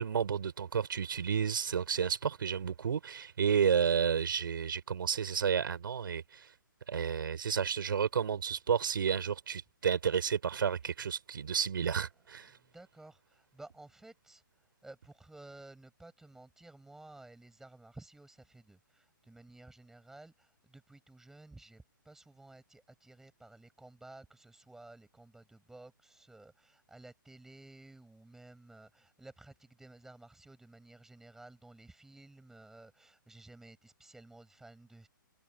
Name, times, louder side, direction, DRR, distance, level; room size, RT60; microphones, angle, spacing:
voice 1, 0.0-6.5 6.9-12.5, right 7 dB, 75° right, 5.6 m, -31 dB
voice 2, 12.7-14.4 14.8-35.1, right 2 dB, 5° right, 7.5 m, -54 dB
hypercardioid pair, 150°, 11 cm